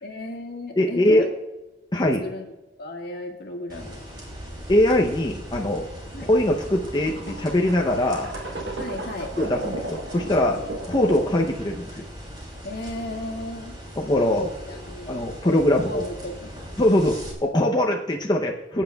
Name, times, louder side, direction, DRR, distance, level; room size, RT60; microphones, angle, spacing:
voice 1, 0.0-1.3 2.0-2.5 2.8-4.0 6.1-6.3 8.8-9.3 12.6-13.7 14.2-16.5, left 1 dB, 65° left, 1 dB, 1.7 m, -34 dB
voice 2, 0.8-1.3 1.9-2.2 4.7-5.9 6.3-8.3 9.4-10.6 10.9-12.0 14.0-14.5 15.1-16.0 16.8-18.8, left 1 dB, 25° left, 0 dB, 0.7 m, -22 dB
sound 1, 3.7-17.3, equal, 25° right, 3.0 m, -40 dB
sound 2, 4.3-11.5, right 1 dB, 75° right, 1.3 m, -36 dB
20.0 x 9.1 x 2.3 m, 1.0 s
head